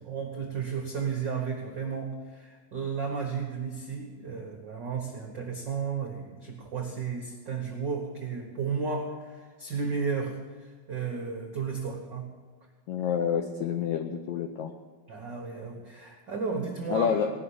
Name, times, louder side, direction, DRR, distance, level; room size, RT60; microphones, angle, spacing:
voice 1, 0.0-12.4 15.1-17.2, right 5 dB, 70° right, 1 dB, 1.0 m, -33 dB
voice 2, 12.9-14.7 16.9-17.3, left 8 dB, 85° left, 5 dB, 1.6 m, -28 dB
18.5 x 6.2 x 9.9 m, 1.5 s
omnidirectional pair, 4.4 m